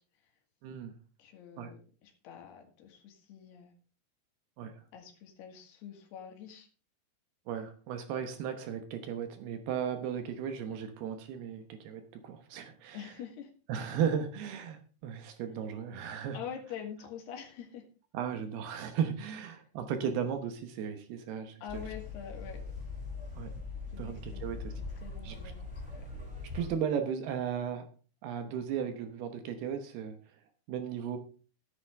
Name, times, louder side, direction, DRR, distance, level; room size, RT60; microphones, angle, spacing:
voice 1, 0.6-0.9 1.6-1.7 4.6-4.7 7.5-13.1 13.7-16.4 18.1-21.8 23.4-23.5 24.0-24.7 25.2-25.4 26.5-27.9 28.2-30.2 30.7-31.2, right 8 dB, 75° right, 7 dB, 2.9 m, -35 dB
voice 2, 1.2-3.7 4.9-6.7 12.9-13.5 16.3-17.9 21.6-22.6 23.9-24.6 24.9-26.0, left 8 dB, 75° left, 3 dB, 3.8 m, -45 dB
sound 1, 21.7-26.7, left 3 dB, ahead, 6.4 m, -41 dB
14.0 x 10.0 x 3.5 m, 0.37 s
omnidirectional pair, 4.9 m